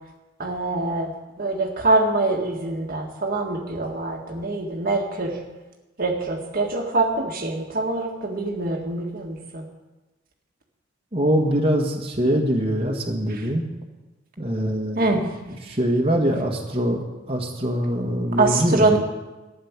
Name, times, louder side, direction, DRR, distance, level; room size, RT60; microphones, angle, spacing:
voice 1, 0.4-1.1 1.4-5.4 6.0-9.6 15.0-15.2 18.4-19.0, right 2 dB, 50° right, 1 dB, 1.7 m, -24 dB
voice 2, 11.1-13.7 14.4-15.2 15.5-17.0 17.3-19.0, equal, 30° right, -1 dB, 1.7 m, -23 dB
13.0 x 9.8 x 7.3 m, 1.1 s
head